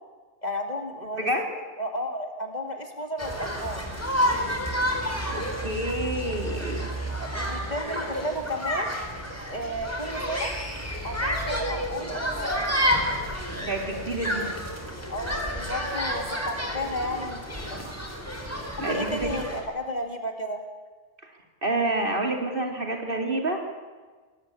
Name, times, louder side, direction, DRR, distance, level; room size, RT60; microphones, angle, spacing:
voice 1, 0.4-1.3 1.8-3.9 7.2-9.0 9.5-10.6 11.0-12.6 15.1-17.4 17.7-17.8 18.9-20.6, equal, 30° left, 4 dB, 2.6 m, -33 dB
voice 2, 1.1-1.5 5.3-6.9 13.6-14.5 18.8-19.4 21.6-23.6, right 1 dB, 40° right, 2 dB, 3.5 m, -28 dB
sound 1, 3.2-19.6, equal, 10° left, 4.0 m, -30 dB
24.0 x 19.0 x 8.6 m, 1.4 s
omnidirectional pair, 1.3 m